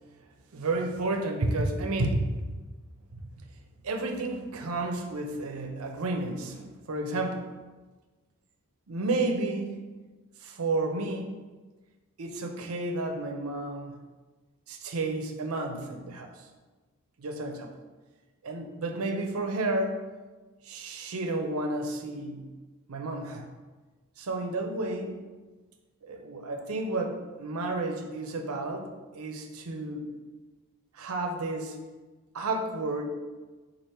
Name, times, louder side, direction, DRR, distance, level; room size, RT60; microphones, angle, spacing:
voice 1, 0.5-2.5 3.1-3.2 3.8-7.5 8.9-10.0 10.4-11.4 12.2-14.0 14.7-16.5 17.2-17.7 18.4-20.0 20.6-22.5 22.9-23.5 24.2-25.2 26.0-30.1 30.9-31.8 32.3-33.1, right 2 dB, 85° right, 4 dB, 0.6 m, -31 dB
4.8 x 2.5 x 4.2 m, 1.3 s
head